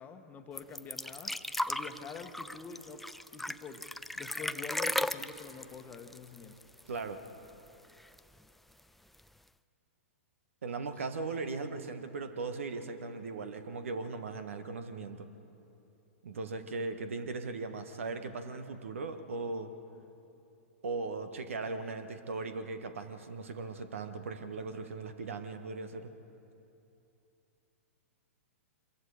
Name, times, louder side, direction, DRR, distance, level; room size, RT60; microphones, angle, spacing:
voice 1, 0.0-1.4 1.7-3.0 3.3-3.9 4.2-6.6 10.9-11.0, left 5 dB, 20° left, 6 dB, 1.3 m, -46 dB
sound 1, 0.6-7.0 7.3-7.4 7.7-8.4 9.2-9.3, left 1 dB, ahead, 0.4 m, -36 dB
voice 2, 6.9-7.2 10.6-15.3 16.2-19.7 20.8-26.1, right 3 dB, 70° right, 9 dB, 1.5 m, -38 dB
26.0 x 22.5 x 5.0 m, 2.8 s
figure-of-eight pair, 110°, 7 cm